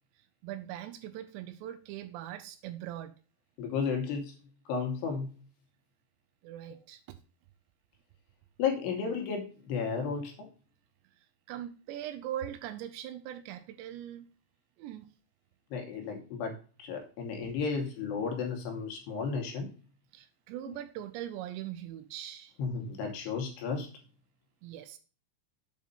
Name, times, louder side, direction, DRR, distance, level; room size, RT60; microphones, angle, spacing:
voice 1, 0.4-3.1 6.4-7.2 11.5-14.3 14.8-15.1 20.1-22.6 24.6-25.0, right 12 dB, 90° right, 2.5 m, -41 dB
voice 2, 3.6-4.4 4.7-5.3 8.6-10.5 15.7-19.7 22.6-23.9, left 5 dB, 75° left, 2.7 m, -33 dB
7.6 x 4.9 x 5.4 m
omnidirectional pair, 5.8 m